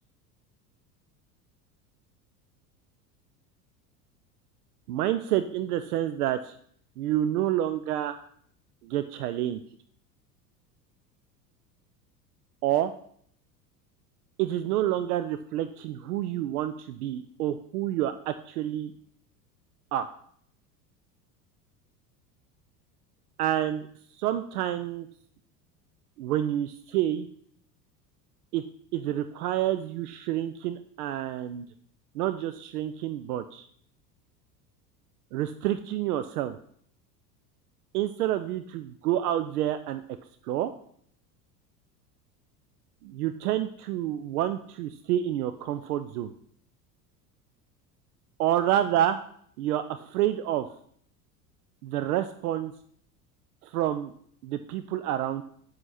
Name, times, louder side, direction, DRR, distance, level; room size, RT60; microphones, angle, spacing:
voice 1, 4.9-6.5 7.0-8.2 8.8-9.6 12.6-12.9 14.4-18.9 19.9-20.1 23.4-23.9 24.2-25.1 26.2-27.3 28.5-28.6 28.9-31.7 32.1-33.7 35.3-36.6 37.9-40.0 40.4-40.7 43.0-46.3 48.4-49.2 49.6-50.7 51.8-52.7 53.6-54.1 54.4-55.4, right 12 dB, 65° right, 10 dB, 0.7 m, -28 dB
9.5 x 7.8 x 4.2 m, 0.62 s
figure-of-eight pair, 75°, 50 cm